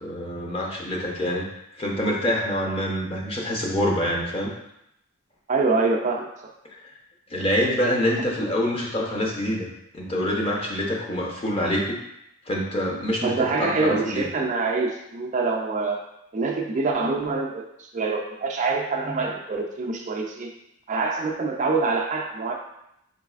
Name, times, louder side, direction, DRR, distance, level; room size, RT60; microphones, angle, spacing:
voice 1, 0.0-1.4 1.8-4.5 6.7-6.8 7.3-9.7 9.9-12.0 12.5-14.3, equal, 25° left, -2 dB, 0.7 m, -26 dB
voice 2, 5.5-6.3 13.2-16.0 16.3-20.5 20.9-22.5, right 3 dB, 35° right, 0 dB, 0.4 m, -25 dB
4.0 x 3.9 x 2.4 m, 0.79 s
head